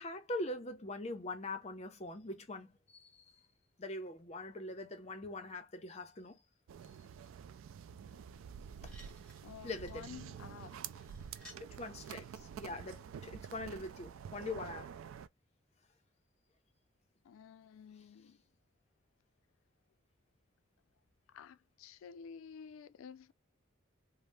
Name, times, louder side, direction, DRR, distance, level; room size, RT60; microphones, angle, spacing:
voice 1, 0.0-3.2 3.8-6.4 8.8-8.9 9.6-10.0 11.6-14.9, left 2 dB, 35° left, 0.5 m, -43 dB
sound 1, 6.7-15.3, right 8 dB, 90° right, 0.3 m, -48 dB
sound 2, 8.4-8.5 8.8-11.7 12.7-12.8, left 1 dB, 5° left, 0.8 m, -60 dB
voice 2, 9.4-11.0 17.2-18.4 21.3-23.3, left 7 dB, 90° left, 0.3 m, -52 dB
2.7 x 2.0 x 3.2 m
head